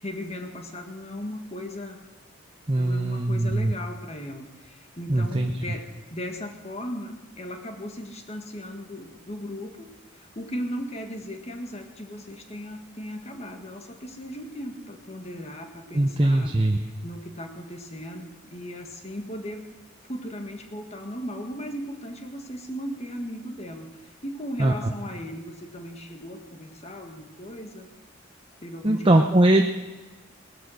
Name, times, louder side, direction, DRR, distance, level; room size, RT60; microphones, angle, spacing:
voice 1, 0.0-2.0 2.8-16.5 17.0-19.7 20.1-27.9 28.6-29.4, equal, 30° left, 4 dB, 1.7 m, -37 dB
voice 2, 2.7-3.7 5.1-5.5 15.9-16.8 24.6-24.7 28.8-29.6, right 1 dB, 25° right, 3 dB, 0.8 m, -21 dB
19.0 x 12.0 x 6.5 m, 1.2 s
head